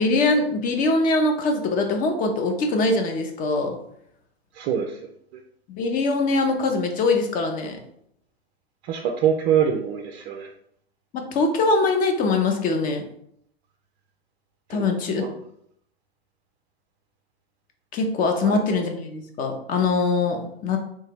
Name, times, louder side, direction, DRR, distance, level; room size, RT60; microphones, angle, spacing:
voice 1, 0.0-3.8 5.7-7.8 11.1-13.0 14.7-15.3 17.9-20.8, left 3 dB, 25° left, 4 dB, 0.7 m, -22 dB
voice 2, 4.5-5.0 8.8-10.5 14.7-14.9 15.2-15.3 18.4-18.6, right 8 dB, 35° right, 1 dB, 0.4 m, -24 dB
3.1 x 2.7 x 3.5 m, 0.71 s
figure-of-eight pair, 100°, 31 cm